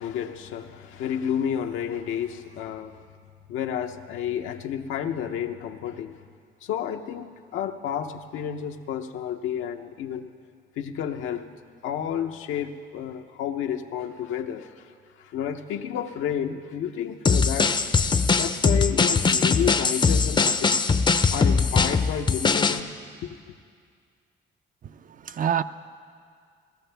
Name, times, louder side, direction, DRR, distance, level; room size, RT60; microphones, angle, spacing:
voice 1, 0.0-3.0 3.5-6.2 6.6-10.3 10.8-11.5 11.8-14.9 15.2-17.9 18.4-20.8 21.3-22.9 23.2-23.4, left 9 dB, 85° left, 0.7 m, -31 dB
sound 1, 17.2-22.8, left 4 dB, 25° left, 0.5 m, -21 dB
voice 2, 24.8-25.6, right 9 dB, 45° right, 0.4 m, -27 dB
18.5 x 13.5 x 3.4 m
cardioid pair, 90°, 20 cm